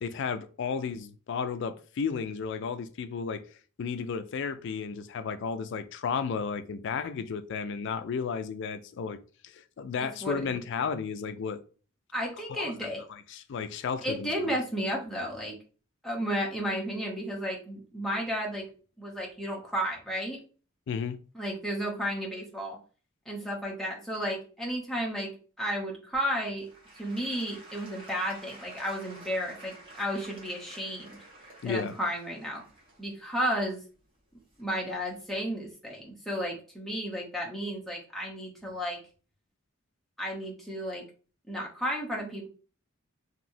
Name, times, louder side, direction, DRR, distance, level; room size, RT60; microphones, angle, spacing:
voice 1, 0.0-3.4 3.8-9.2 9.4-11.6 12.5-12.9 13.3-14.5 20.9-21.2 31.6-31.9, left 6 dB, 55° left, 0.3 m, -33 dB
voice 2, 10.0-10.4 12.1-13.0 14.0-15.6 16.0-18.7 19.0-20.4 21.3-22.8 23.3-25.3 25.6-26.7 27.0-31.2 31.6-32.6 33.0-33.8 34.6-39.0 40.2-41.0 41.5-42.5, equal, ahead, 0.8 m, -33 dB
Applause / Crowd, 26.1-35.0 35.6-35.7, right 2 dB, 25° right, 1.2 m, -51 dB
3.0 x 2.8 x 2.6 m
head